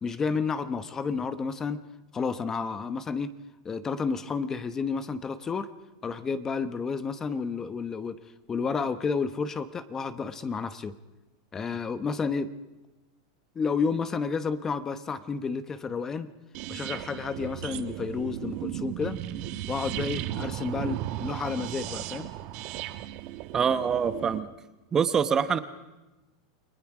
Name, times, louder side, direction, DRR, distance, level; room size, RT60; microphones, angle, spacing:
voice 1, 0.0-1.8 2.1-3.3 3.6-5.7 6.0-8.1 8.5-11.0 11.5-12.5 13.5-16.3 16.7-19.2 19.7-22.3, left 5 dB, 20° left, 11 dB, 1.0 m, -31 dB
sound 1, 16.5-24.4, right 13 dB, 50° right, 1.3 m, -35 dB
voice 2, 23.5-24.5 24.9-25.6, right 7 dB, 25° right, 11 dB, 1.1 m, -24 dB
29.5 x 19.5 x 5.0 m, 1.1 s
supercardioid pair, 130°, 2 cm